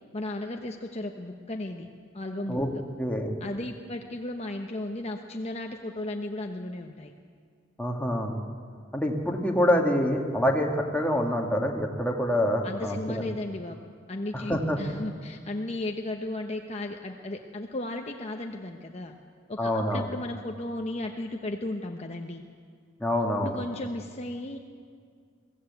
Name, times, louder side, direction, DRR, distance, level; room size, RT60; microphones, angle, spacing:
voice 1, 0.1-1.9 2.1-2.8 3.4-7.1 12.6-13.8 14.1-19.1 19.5-22.4 23.4-24.6, left 1 dB, 35° left, 3 dB, 1.0 m, -35 dB
voice 2, 3.0-3.4 7.8-8.4 8.9-13.2 14.3-14.8 19.6-20.1 23.0-23.6, left 1 dB, 5° left, 0 dB, 2.0 m, -26 dB
22.5 x 15.5 x 8.2 m, 2.1 s
head